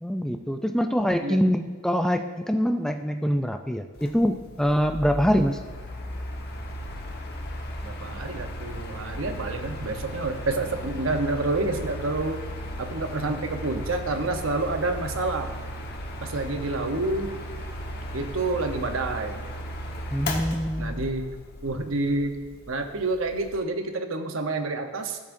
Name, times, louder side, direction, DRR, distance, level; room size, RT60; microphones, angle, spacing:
voice 1, 0.0-5.6 20.1-21.1, equal, 5° left, 6 dB, 0.3 m, -24 dB
Mechanical fan, 4.0-23.6, equal, 50° left, 1.2 m, -36 dB
voice 2, 7.8-12.4 12.8-15.5 16.2-17.4 18.1-19.4 20.8-21.3 21.6-25.2, right 2 dB, 65° right, 6 dB, 0.9 m, -28 dB
16.5 x 7.1 x 2.6 m, 1.4 s
head